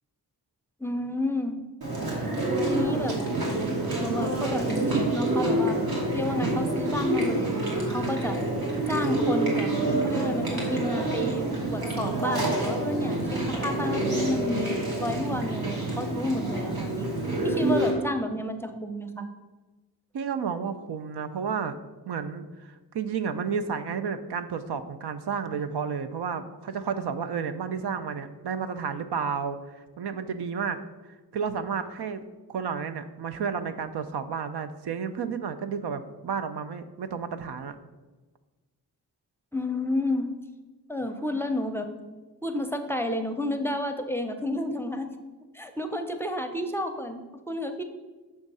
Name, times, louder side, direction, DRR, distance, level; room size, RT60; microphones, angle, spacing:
voice 1, 0.8-1.6 2.7-3.1 4.0-5.8 6.1-8.4 8.9-9.7 10.0-17.1 17.4-19.3 39.5-40.3 40.9-42.0 42.4-45.1 45.5-47.8, left 1 dB, 5° left, 6 dB, 0.5 m, -31 dB
Chewing mastication, 1.8-17.9, right 2 dB, 65° right, 1.8 m, -27 dB
voice 2, 20.1-21.8 22.1-30.8 31.3-32.2 32.5-37.8, right 6 dB, 90° right, 9 dB, 0.5 m, -31 dB
6.5 x 3.5 x 5.4 m, 1.2 s
wide cardioid pair, 95°, 39 cm